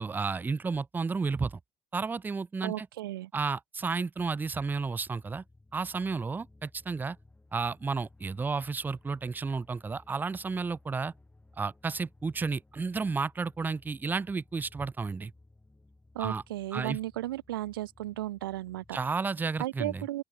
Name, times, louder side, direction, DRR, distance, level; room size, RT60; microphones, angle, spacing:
voice 1, 0.0-1.6 1.9-2.9 3.3-5.4 5.7-7.2 7.5-11.1 11.6-15.3 16.2-16.4 16.7-17.0 18.9-20.0, right 4 dB, 15° right, 0.4 m, -32 dB
voice 2, 2.6-3.3 16.1-19.0 19.6-20.2, right 15 dB, 85° right, 0.4 m, -35 dB
sound 1, 4.1-19.2, left 2 dB, 10° left, 4.1 m, -59 dB
open air
hypercardioid pair, 70°, 11 cm